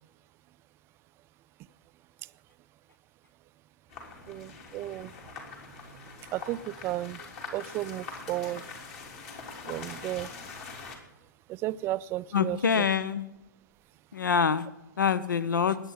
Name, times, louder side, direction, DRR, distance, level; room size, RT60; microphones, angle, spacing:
sound 1, 3.9-11.0, left 4 dB, 45° left, 3.3 m, -43 dB
voice 1, 4.3-5.1 6.3-8.7 9.7-10.3 11.5-12.8, right 15 dB, 25° right, 17 dB, 0.4 m, -34 dB
voice 2, 12.3-13.3 14.1-14.7 15.0-15.8, left 6 dB, 75° left, 17 dB, 0.8 m, -25 dB
21.0 x 8.8 x 5.6 m, 0.95 s
figure-of-eight pair, 115°, 10 cm